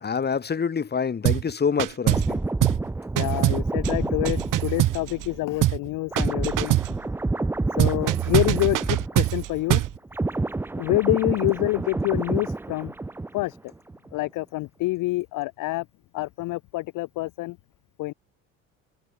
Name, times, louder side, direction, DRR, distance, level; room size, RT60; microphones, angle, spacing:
voice 1, 0.0-2.4, left 6 dB, 25° left, 1.8 m, -26 dB
sound 1, 1.2-1.5 1.8-2.3 2.6-2.9 3.2-5.3 5.6-5.9 6.2-7.0 7.8-10.0, right 14 dB, 55° right, 2.7 m, -23 dB
sound 2, 2.1-9.6 9.9-13.6 13.9-14.1, right 2 dB, 5° right, 0.4 m, -29 dB
voice 2, 3.2-6.7 7.8-9.8 10.8-12.9 13.3-13.6 14.1-15.8 16.1-17.6 18.0-18.1, left 20 dB, 55° left, 0.9 m, -27 dB
hypercardioid pair, 70°, 39 cm